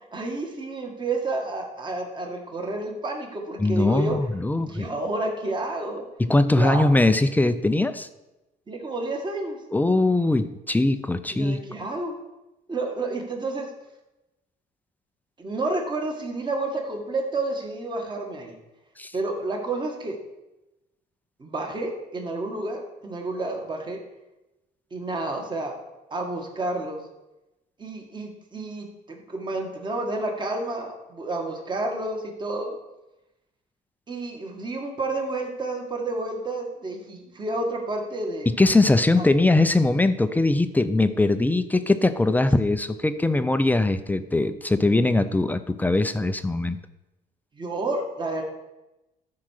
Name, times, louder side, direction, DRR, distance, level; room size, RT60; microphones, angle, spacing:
voice 1, 0.1-4.2 4.6-6.0 6.5-6.8 8.7-9.6 11.3-12.1 12.7-13.7 15.4-18.6 19.1-20.2 21.4-24.0 24.9-25.8 26.1-27.0 27.8-32.8 34.1-38.5 39.2-39.3 47.5-48.4, right 2 dB, 25° right, 2 dB, 1.9 m, -30 dB
voice 2, 3.6-4.9 6.2-8.1 9.7-11.6 19.0-19.1 38.5-46.8, left 2 dB, 10° left, 10 dB, 0.5 m, -21 dB
12.5 x 4.8 x 6.5 m, 0.99 s
cardioid pair, 110°, 17 cm